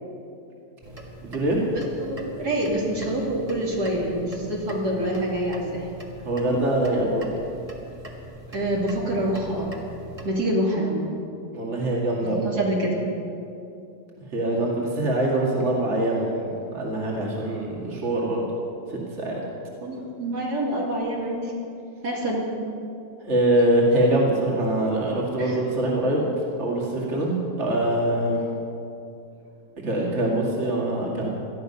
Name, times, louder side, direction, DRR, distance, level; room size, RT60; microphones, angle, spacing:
sound 1, 0.8-10.3, right 1 dB, 20° right, 1.6 m, -41 dB
voice 1, 1.2-1.6 6.2-7.3 11.5-12.5 14.3-18.4 18.9-19.4 23.2-26.3 26.6-28.5 29.8-31.3, right 1 dB, 40° right, -3 dB, 2.5 m, -24 dB
voice 2, 2.0-5.9 8.5-9.8 10.2-11.0 12.2-13.0 19.8-21.5 22.0-22.5 25.4-25.6, right 1 dB, 70° right, -3 dB, 3.3 m, -26 dB
18.5 x 13.0 x 5.6 m, 2.7 s
omnidirectional pair, 1.8 m